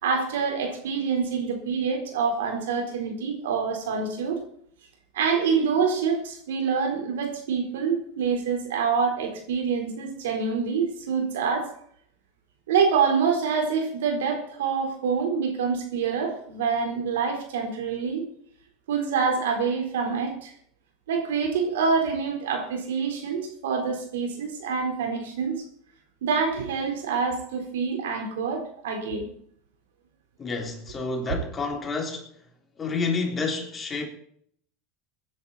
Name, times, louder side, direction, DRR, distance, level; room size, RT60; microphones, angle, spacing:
voice 1, 0.0-4.4 5.1-11.7 12.7-18.2 18.9-20.5 21.1-25.5 26.2-29.3, right 5 dB, 85° right, 4.2 m, -26 dB
voice 2, 30.4-32.3 32.8-34.1, left 4 dB, 25° left, 3.5 m, -29 dB
19.5 x 10.5 x 4.3 m
supercardioid pair, 110°, 0 cm